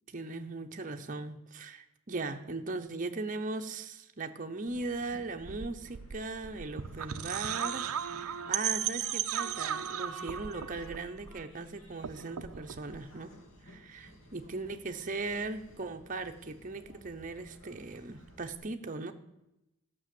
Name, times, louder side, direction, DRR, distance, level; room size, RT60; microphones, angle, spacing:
voice 1, 0.1-13.3 13.6-19.1, right 3 dB, 35° right, 5 dB, 0.8 m, -39 dB
Train, 4.7-18.6, left 1 dB, 65° left, 2.7 m, -56 dB
sound 1, 5.4-11.7 11.9-13.0, right 9 dB, 80° right, 0.6 m, -36 dB
13.5 x 6.2 x 7.6 m, 0.90 s
head